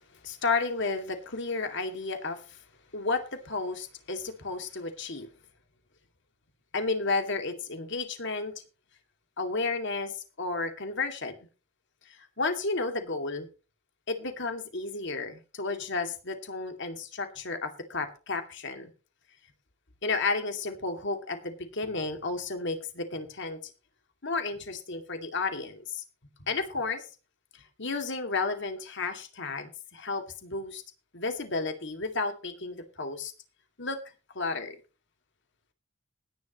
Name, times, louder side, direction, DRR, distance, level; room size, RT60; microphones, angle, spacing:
voice 1, 0.2-2.4 2.9-5.3 6.7-8.5 9.4-10.1 10.4-11.3 12.4-13.5 14.1-18.9 20.0-23.6 24.2-26.0 26.5-27.0 27.8-30.8 31.1-33.3 33.8-34.0 34.3-34.8, left 3 dB, 60° left, 2.4 m, -32 dB
19.5 x 10.5 x 3.1 m
head